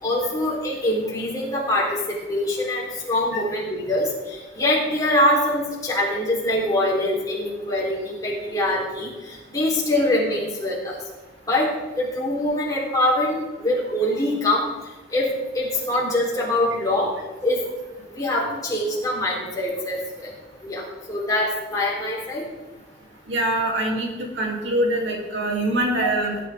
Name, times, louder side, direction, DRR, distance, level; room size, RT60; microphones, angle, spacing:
voice 1, 0.0-11.0 11.4-14.7 15.1-17.1 17.4-17.6 18.1-20.3 20.6-22.5 26.0-26.1, left 1 dB, 20° left, -5 dB, 3.9 m, -24 dB
voice 2, 23.3-26.4, right 1 dB, 75° right, -1 dB, 3.0 m, -24 dB
18.5 x 9.1 x 3.7 m, 1.2 s
head